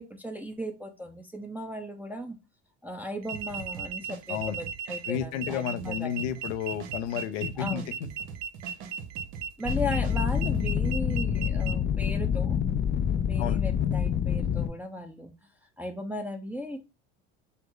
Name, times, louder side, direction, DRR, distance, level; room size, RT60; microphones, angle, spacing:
voice 1, 0.0-2.4 2.8-6.3 7.6-7.9 9.6-12.6 13.2-15.3 15.8-16.8, equal, 5° right, 0.7 m, -36 dB
sound 1, 3.2-11.7, right 7 dB, 85° right, 0.5 m, -37 dB
sound 2, 3.3-10.6, right 7 dB, 70° right, 1.0 m, -43 dB
voice 2, 5.1-8.1 13.4-13.6, left 9 dB, 90° left, 0.7 m, -32 dB
sound 3, 9.6-14.7, left 8 dB, 30° left, 0.5 m, -27 dB
5.5 x 2.0 x 3.8 m
supercardioid pair, 90°, 35 cm